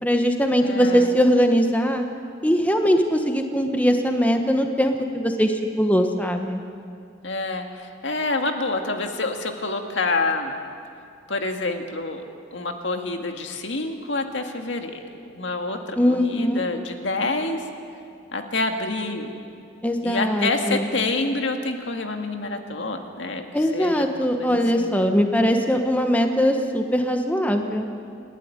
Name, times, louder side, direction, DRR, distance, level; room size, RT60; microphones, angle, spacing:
voice 1, 0.0-2.0 2.4-6.6 16.0-16.6 19.8-20.9 23.5-27.9, equal, 10° left, 4 dB, 1.1 m, -21 dB
voice 2, 0.6-1.1 7.2-10.5 11.3-12.2 12.5-15.0 15.4-17.6 18.3-19.3 20.0-23.4 23.7-25.0, left 3 dB, 75° left, 4 dB, 1.9 m, -27 dB
29.0 x 12.0 x 9.7 m, 2.4 s
head